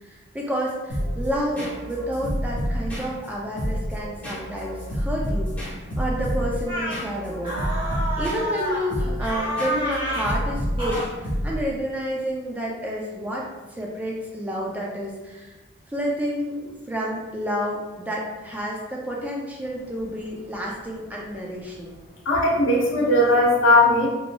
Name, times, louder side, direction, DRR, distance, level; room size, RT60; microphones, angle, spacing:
voice 1, 0.0-5.5 6.0-7.5 8.2-15.6 15.9-22.0, equal, 10° right, -3 dB, 0.3 m, -30 dB
sound 1, 0.9-11.8, equal, 10° left, 0.9 m, -29 dB
sound 2, 6.7-7.0 7.4-8.9 9.2-10.3 10.8-11.1, equal, 25° right, 0.8 m, -29 dB
voice 2, 22.3-24.1, left 1 dB, 85° left, -3 dB, 0.7 m, -18 dB
3.0 x 2.6 x 2.2 m, 1.2 s
head